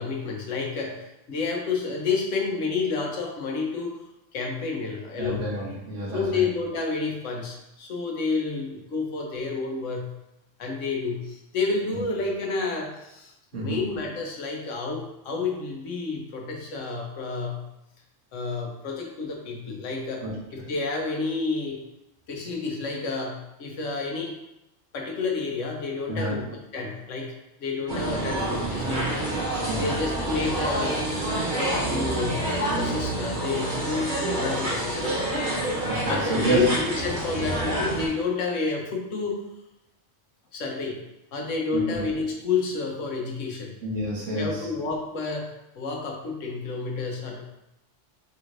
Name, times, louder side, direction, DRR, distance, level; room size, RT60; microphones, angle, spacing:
voice 1, 0.0-4.0 4.3-5.5 6.1-10.1 10.6-17.6 18.3-20.3 20.5-21.8 22.3-24.4 24.9-27.3 27.6-29.2 29.8-31.1 31.5-35.2 36.1-39.4 40.5-41.0 41.3-43.7 44.3-45.5 45.8-47.4, left 4 dB, 85° left, 0 dB, 1.2 m, -30 dB
voice 2, 5.2-6.4 13.5-13.8 20.2-20.3 26.1-26.4 29.7-30.0 35.8-36.7 41.9-42.0 43.8-44.7, right 1 dB, 90° right, -4 dB, 1.5 m, -28 dB
sound 1, 27.9-38.1, right 1 dB, 45° right, 1.2 m, -28 dB
5.3 x 3.1 x 2.6 m, 0.89 s
omnidirectional pair, 1.2 m